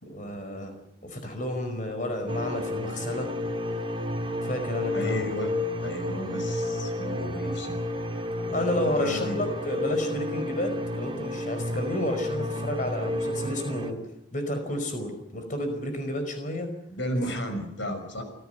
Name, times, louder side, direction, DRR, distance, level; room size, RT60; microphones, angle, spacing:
voice 1, 0.0-0.7 1.0-3.3 4.4-5.3 8.5-16.7, left 1 dB, 40° left, 7 dB, 5.1 m, -31 dB
sound 1, 2.3-13.9, left 1 dB, 30° right, 2.0 m, -31 dB
voice 2, 4.9-5.5 5.8-7.8 8.1-9.4 16.9-18.2, equal, 75° left, 7 dB, 6.1 m, -34 dB
29.5 x 17.0 x 8.0 m, 0.80 s
head